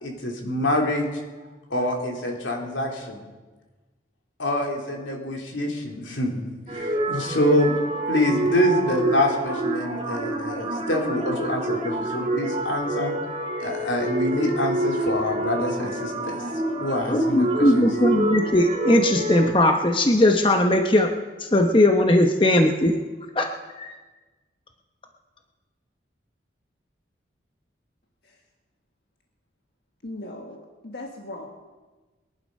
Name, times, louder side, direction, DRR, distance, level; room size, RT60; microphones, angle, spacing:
voice 1, 0.0-1.1 1.7-3.2 4.4-6.4 6.7-7.7 8.1-13.1 13.6-16.4 16.8-17.9, left 1 dB, 85° left, 1 dB, 3.1 m, -26 dB
sound 1, 6.7-19.5, right 1 dB, 30° right, 2.4 m, -27 dB
voice 2, 17.1-21.1 21.4-22.9 23.4-23.5 23.8-23.9, left 1 dB, 25° left, 4 dB, 0.9 m, -19 dB
voice 3, 30.0-31.5, left 1 dB, 60° left, 1 dB, 1.5 m, -38 dB
22.0 x 11.0 x 5.4 m, 1.3 s
head